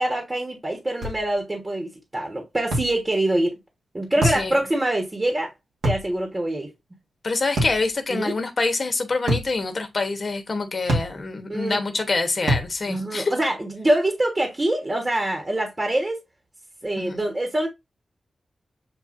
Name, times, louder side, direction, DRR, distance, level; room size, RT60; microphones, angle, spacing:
voice 1, 0.0-3.6 3.9-5.5 5.8-6.7 8.1-8.4 11.5-11.8 12.9-16.2 16.8-17.7, right 1 dB, 30° right, 1.3 m, -24 dB
sound 1, 1.0-1.2 2.7-2.9 4.2-4.5 5.8-6.1 7.6-7.8 9.3-9.5 10.9-11.1 12.5-12.7, right 1 dB, 90° right, 1.6 m, -23 dB
voice 2, 4.2-4.6 7.2-13.3 17.0-17.2, left 3 dB, 55° left, 1.1 m, -26 dB
7.3 x 2.6 x 2.6 m
cardioid pair, 50°, 0 cm